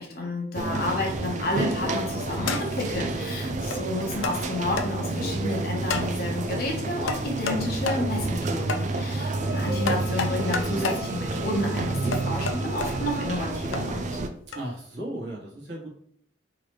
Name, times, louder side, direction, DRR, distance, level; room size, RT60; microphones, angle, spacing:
voice 1, 0.0-14.2, left 1 dB, 50° left, 0 dB, 1.0 m, -30 dB
sound 1, 0.5-14.3, right 2 dB, 40° right, 0.3 m, -29 dB
voice 2, 0.5-0.9 14.5-15.9, right 1 dB, 65° right, -4 dB, 1.3 m, -35 dB
sound 2, 1.6-1.9 2.5-2.9 3.7-3.8 4.2-4.4 4.8-4.9 5.9-6.1 7.1-7.6 7.9-8.0 8.7-8.8 9.9-11.0 12.1-12.9 13.7-13.8 14.5-14.7, left 4 dB, 85° left, 0.5 m, -30 dB
Wind instrument woodwind instrument, 9.3-13.6, right 1 dB, 30° left, 0.7 m, -46 dB
3.9 x 3.1 x 3.1 m, 0.66 s
head